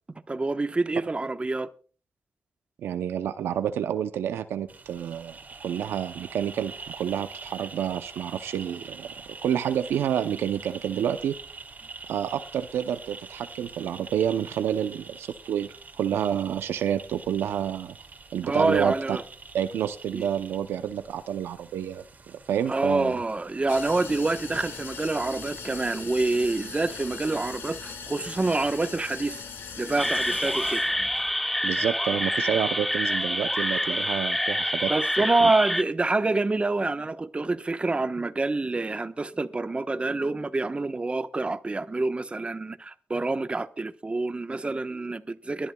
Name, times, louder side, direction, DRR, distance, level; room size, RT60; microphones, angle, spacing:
voice 1, 0.3-1.7 18.4-19.2 20.1-20.3 22.7-29.4 29.8-30.8 34.9-45.7, right 3 dB, 30° right, 1.1 m, -27 dB
voice 2, 2.8-9.1 9.4-11.3 12.1-18.0 18.3-19.2 19.5-23.2 31.6-34.9 35.4-35.5, right 9 dB, 90° right, 0.6 m, -29 dB
sound 1, 4.7-23.7, right 4 dB, 45° right, 2.3 m, -45 dB
sound 2, 23.7-31.3, left 5 dB, 75° left, 2.0 m, -40 dB
sound 3, 30.0-35.8, equal, 5° left, 0.5 m, -27 dB
23.5 x 11.0 x 2.3 m
cardioid pair, 55°, 4 cm